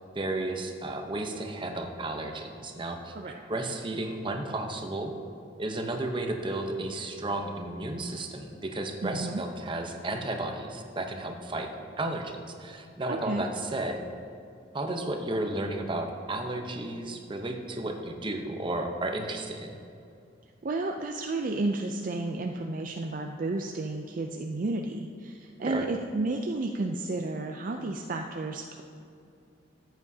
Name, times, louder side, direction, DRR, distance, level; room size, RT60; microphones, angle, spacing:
voice 1, 0.1-5.1 5.6-11.7 12.0-14.0 14.7-19.8 25.6-25.8, right 2 dB, 25° right, 3 dB, 0.8 m, -33 dB
voice 2, 9.0-9.4 13.1-13.4 20.6-28.8, right 2 dB, 45° right, 3 dB, 0.4 m, -32 dB
14.0 x 8.0 x 2.8 m, 2.5 s
head